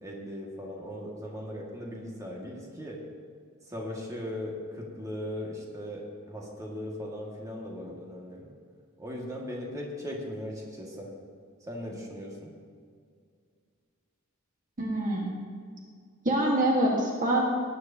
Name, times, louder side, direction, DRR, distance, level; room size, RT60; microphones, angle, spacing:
voice 1, 0.0-3.0 3.7-6.0 6.3-8.5 9.0-11.1 11.7-12.5, left 1 dB, 15° right, -3 dB, 1.9 m, -38 dB
voice 2, 14.8-15.3 16.2-17.4, right 1 dB, 40° right, -2 dB, 1.5 m, -25 dB
18.5 x 9.7 x 2.8 m, 2.1 s
head